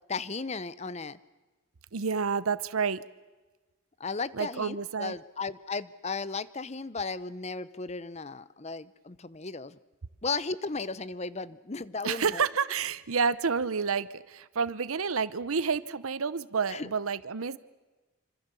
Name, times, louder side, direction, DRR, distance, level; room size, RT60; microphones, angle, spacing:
voice 1, 0.1-1.2 4.0-9.8 10.2-12.4 16.7-16.9, left 4 dB, 30° left, 17 dB, 0.7 m, -35 dB
voice 2, 1.9-3.0 4.3-5.2 12.0-17.6, right 5 dB, 90° right, 16 dB, 0.8 m, -29 dB
26.5 x 26.0 x 6.9 m, 1.2 s
head